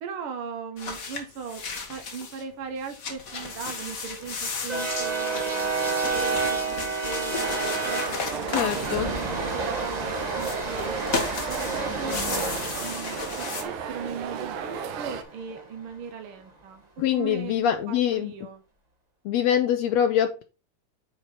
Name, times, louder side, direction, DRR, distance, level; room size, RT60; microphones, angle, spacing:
voice 1, 0.0-11.1 11.5-12.5 12.8-18.6, right 6 dB, 70° right, 1.4 m, -38 dB
sound 1, 0.8-2.4 2.8-9.8 10.3-13.6, left 4 dB, 50° left, 1.0 m, -34 dB
sound 2, 3.4-15.6, right 3 dB, 25° right, 0.8 m, -31 dB
sound 3, 7.3-15.2, right 6 dB, 85° right, 2.4 m, -34 dB
voice 2, 8.5-9.1 17.0-18.3 19.2-20.4, left 10 dB, 75° left, 1.7 m, -24 dB
8.9 x 4.6 x 4.0 m
omnidirectional pair, 3.4 m